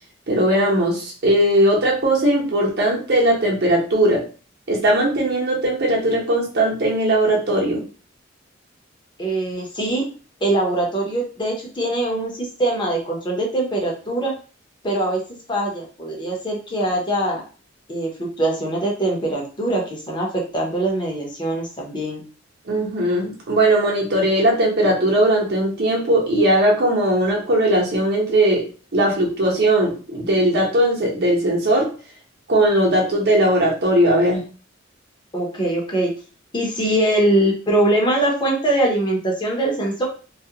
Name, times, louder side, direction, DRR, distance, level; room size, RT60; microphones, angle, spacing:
voice 1, 0.3-4.2 4.7-7.8 22.7-28.6 28.9-31.9 32.5-34.4, right 1 dB, 55° right, -2 dB, 0.8 m, -18 dB
voice 2, 9.2-10.0 10.4-14.3 14.8-15.2 15.5-17.4 17.9-22.2 35.3-36.1 36.5-40.1, right 1 dB, 25° left, -1 dB, 0.7 m, -22 dB
2.3 x 2.1 x 2.8 m, 0.37 s
head